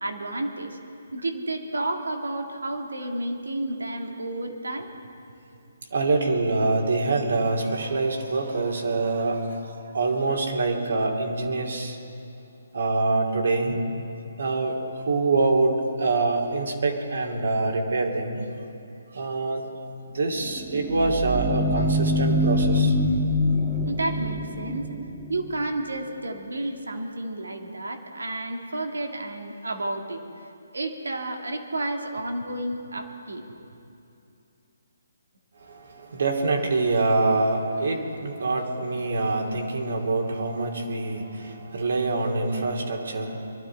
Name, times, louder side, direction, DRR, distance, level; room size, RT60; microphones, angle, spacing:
voice 1, 0.0-0.8 1.1-4.9 23.9-24.8 25.3-30.2 30.7-33.5, right 2 dB, 90° right, 3 dB, 2.0 m, -31 dB
voice 2, 5.9-12.0 12.7-13.8 14.4-18.4 19.1-19.8 20.1-23.0 35.6-43.5, right 3 dB, 70° right, 1 dB, 2.6 m, -25 dB
sound 1, 20.3-25.8, left 1 dB, 10° right, 1.4 m, -25 dB
23.5 x 12.5 x 4.5 m, 2.7 s
hypercardioid pair, 150°, 0 cm